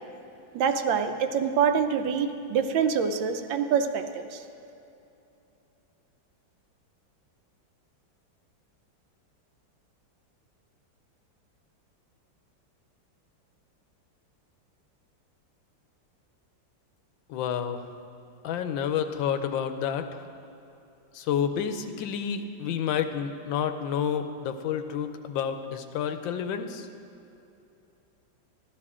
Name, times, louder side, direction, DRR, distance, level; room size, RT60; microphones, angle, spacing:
voice 1, 0.5-4.4, right 7 dB, 80° right, 7 dB, 1.4 m, -25 dB
voice 2, 17.3-17.8 18.4-20.0 21.1-26.9, left 8 dB, 85° left, 8 dB, 1.4 m, -29 dB
13.5 x 12.0 x 3.7 m, 2.8 s
omnidirectional pair, 2.1 m